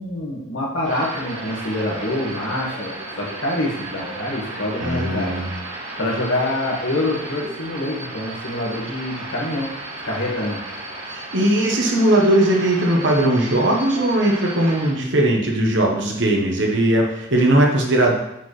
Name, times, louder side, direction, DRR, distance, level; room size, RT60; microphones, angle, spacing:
voice 1, 0.0-5.4 6.0-9.7 10.0-10.6, left 1 dB, 75° left, -3 dB, 1.8 m, -26 dB
sound 1, 0.8-14.9, right 2 dB, 90° right, 2.4 m, -34 dB
voice 2, 4.8-5.5 11.1-18.1, right 1 dB, 60° right, 0 dB, 1.1 m, -19 dB
8.0 x 4.4 x 3.3 m, 0.83 s
head